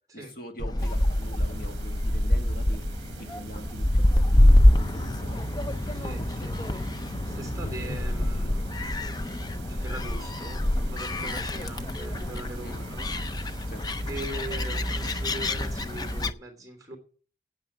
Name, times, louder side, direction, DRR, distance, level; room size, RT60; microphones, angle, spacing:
voice 1, 0.1-2.9 3.2-5.5 11.2-11.3 12.6-12.9 13.7-13.9, equal, 50° left, 1.8 m, -44 dB
Gull seagull, 0.6-16.3, left 1 dB, 20° left, 0.5 m, -25 dB
sound 1, 0.8-16.3, right 2 dB, 65° right, 1.1 m, -43 dB
voice 2, 5.9-8.9 9.7-13.6 14.0-17.0, right 2 dB, 20° right, 3.1 m, -42 dB
8.9 x 8.8 x 8.9 m
head